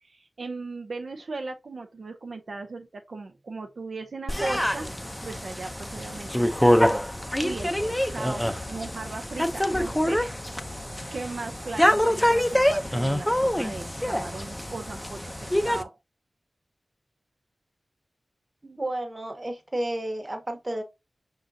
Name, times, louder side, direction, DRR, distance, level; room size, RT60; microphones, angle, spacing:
voice 1, 0.0-7.1 7.4-10.8 11.1-15.9, right 3 dB, 75° right, 0.5 m, -38 dB
sound 1, 4.3-15.8, equal, 10° left, 0.6 m, -25 dB
voice 2, 18.6-20.8, right 1 dB, 30° right, 1.0 m, -32 dB
5.0 x 3.7 x 2.7 m
cardioid pair, 55°, 0 cm